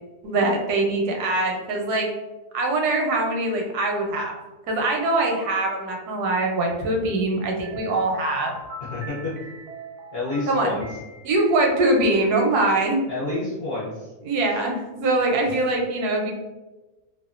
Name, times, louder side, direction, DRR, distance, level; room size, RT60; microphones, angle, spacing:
voice 1, 0.2-2.1 2.5-4.3 4.7-8.6 10.5-10.8 11.2-13.0 14.2-16.3, right 2 dB, 90° right, 1 dB, 1.2 m, -23 dB
sound 1, 7.6-12.9, right 1 dB, 70° right, 0.7 m, -41 dB
voice 2, 8.9-9.3 10.1-10.9 13.1-14.1, left 2 dB, 55° left, -7 dB, 0.7 m, -28 dB
2.7 x 2.2 x 2.4 m, 1.1 s
omnidirectional pair, 1.6 m